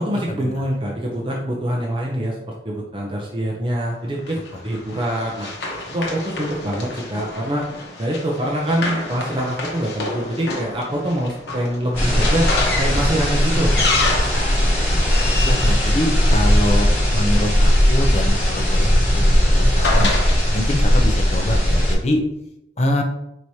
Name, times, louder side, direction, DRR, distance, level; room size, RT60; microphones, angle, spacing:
voice 1, 0.0-2.4 2.6-4.4 4.6-5.5 5.9-7.6 8.0-12.5 12.8-13.9, right 1 dB, 30° right, -2 dB, 0.5 m, -24 dB
Run, 4.3-16.9 17.9-20.4, left 2 dB, 75° left, 0.9 m, -29 dB
sound 1, 11.9-21.9, equal, 15° left, 1.4 m, -18 dB
voice 2, 15.4-19.3 19.6-20.2 20.5-22.2 22.8-23.0, left 1 dB, 35° left, 3 dB, 0.5 m, -24 dB
4.6 x 3.0 x 2.7 m, 0.83 s
head